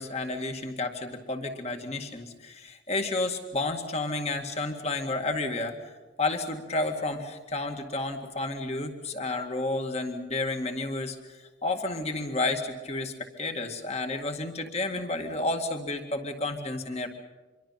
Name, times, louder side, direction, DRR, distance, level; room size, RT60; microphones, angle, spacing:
voice 1, 0.0-5.7 6.2-17.2, left 2 dB, 35° left, 5 dB, 2.1 m, -31 dB
26.0 x 23.0 x 5.9 m, 1.2 s
head